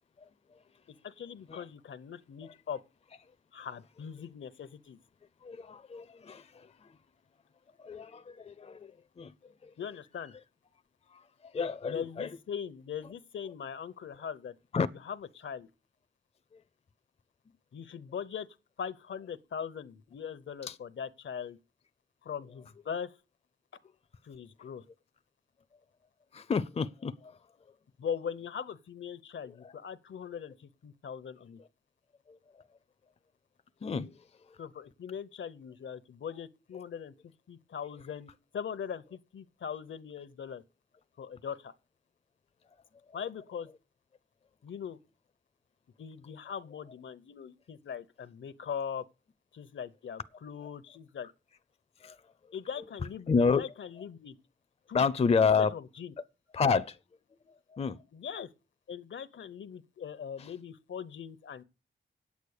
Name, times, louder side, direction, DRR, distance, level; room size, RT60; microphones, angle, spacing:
voice 1, 1.0-2.8 3.5-5.0 9.8-10.3 11.9-14.6 15.1-15.7 17.7-18.5 18.8-21.6 22.2-23.1 24.2-24.8 28.0-31.6 34.6-37.1 37.5-40.6 41.2-41.7 43.1-43.7 44.6-45.0 46.0-49.0 49.5-51.3 52.5-53.3 53.5-54.3 54.9-55.1 55.4-56.1 58.1-58.5 58.9-61.6, left 7 dB, 75° left, 0.8 m, -40 dB
voice 2, 5.4-6.9 7.8-9.3 9.6-9.7 11.1-12.3 14.7-14.9 20.7-20.8 26.3-27.4 29.6-29.7 32.3-32.4 33.8-34.2 34.5-34.6 52.0-52.2 53.3-53.7 54.9-55.7 56.5-57.0 57.7-58.0 60.4-60.5, left 5 dB, 30° left, 0.5 m, -30 dB
9.0 x 8.3 x 6.5 m
wide cardioid pair, 180°, 20 cm